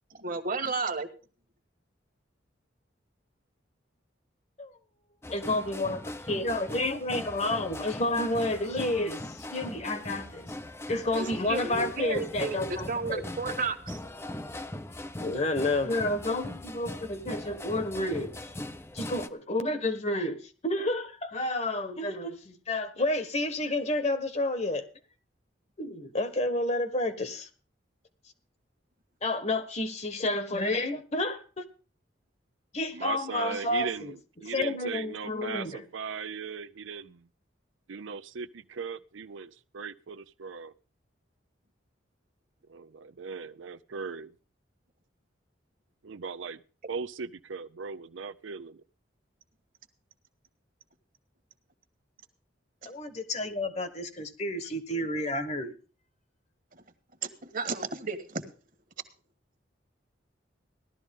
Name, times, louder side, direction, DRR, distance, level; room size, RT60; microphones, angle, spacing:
voice 1, 0.1-1.1 11.1-14.0 52.8-52.9 57.2-58.4, right 4 dB, 45° right, 1.5 m, -33 dB
sound 1, 5.2-19.3, left 1 dB, 15° left, 0.6 m, -40 dB
voice 2, 5.3-10.5 10.9-13.2 15.2-18.3 18.9-24.8 25.8-27.5 29.2-31.6 32.7-34.1 34.5-35.8 52.9-55.8, left 2 dB, 35° left, 1.2 m, -30 dB
voice 3, 32.9-37.3 37.9-40.7 42.7-44.3 46.0-46.6 46.9-48.8, right 5 dB, 90° right, 0.6 m, -38 dB
16.0 x 12.0 x 3.6 m
head